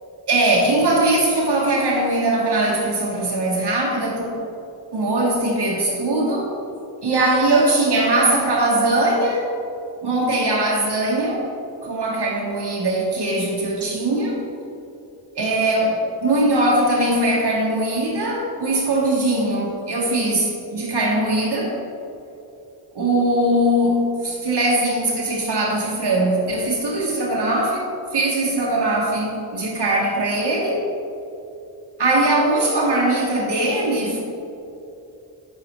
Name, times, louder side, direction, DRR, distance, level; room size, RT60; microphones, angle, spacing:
voice 1, 0.3-4.3 4.9-6.5 7.0-9.5 10.0-11.4 11.8-14.4 15.3-21.7 22.9-30.8 32.0-34.2, right 1 dB, 60° right, -3 dB, 1.3 m, -20 dB
7.6 x 6.3 x 3.0 m, 2.7 s
cardioid pair, 45°, 46 cm